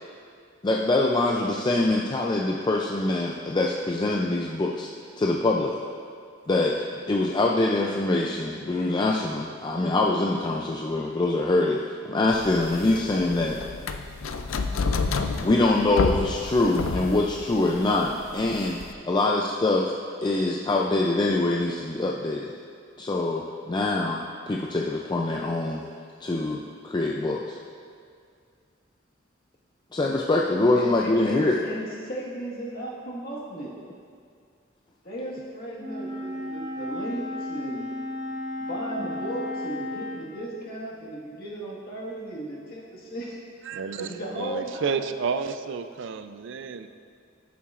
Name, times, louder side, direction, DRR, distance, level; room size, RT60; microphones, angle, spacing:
voice 1, 0.6-4.9 5.2-5.8 6.5-13.6 15.4-19.9 20.2-22.5 23.0-25.8 26.2-27.6 29.9-31.6, left 2 dB, 20° left, -1 dB, 0.4 m, -24 dB
sound 1, 12.3-18.9, left 4 dB, 90° left, 0.5 m, -30 dB
voice 2, 30.7-33.7 35.0-38.0 38.7-43.4 43.9-45.1, right 1 dB, 50° left, -5 dB, 1.7 m, -35 dB
Wind instrument woodwind instrument, 35.8-40.2, left 1 dB, 40° right, 2.0 m, -33 dB
voice 3, 43.7-46.9, right 5 dB, 65° right, 10 dB, 0.4 m, -31 dB
13.0 x 7.0 x 2.5 m, 2.2 s
head